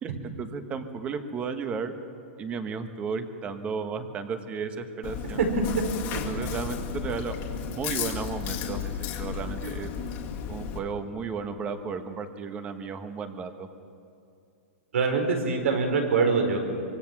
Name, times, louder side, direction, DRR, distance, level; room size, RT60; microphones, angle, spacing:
voice 1, 0.0-1.9 2.4-5.4 6.1-8.9 9.2-9.9 10.5-13.7, right 5 dB, 15° right, 9 dB, 1.3 m, -34 dB
Chewing mastication, 5.0-10.8, left 7 dB, 30° left, 2.0 m, -33 dB
voice 2, 14.9-16.6, right 5 dB, 85° right, 3 dB, 4.9 m, -24 dB
24.5 x 24.0 x 6.1 m, 2.5 s
hypercardioid pair, 160°, 7 cm